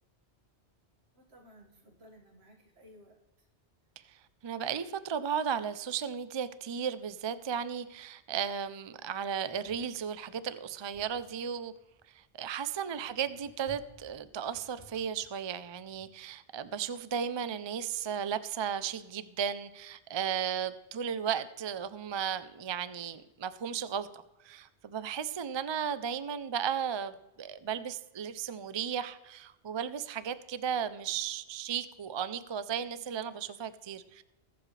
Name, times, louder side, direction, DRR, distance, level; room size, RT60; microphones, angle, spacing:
voice 1, 1.1-3.5 12.9-13.4, equal, 75° right, 2 dB, 2.1 m, -58 dB
voice 2, 4.4-11.7 12.1-34.2, right 8 dB, 40° right, 14 dB, 0.4 m, -35 dB
sound 1, 9.4-12.5 13.0-16.4, left 2 dB, 65° left, 3.0 m, -59 dB
21.5 x 7.4 x 3.3 m, 1.0 s
omnidirectional pair, 1.1 m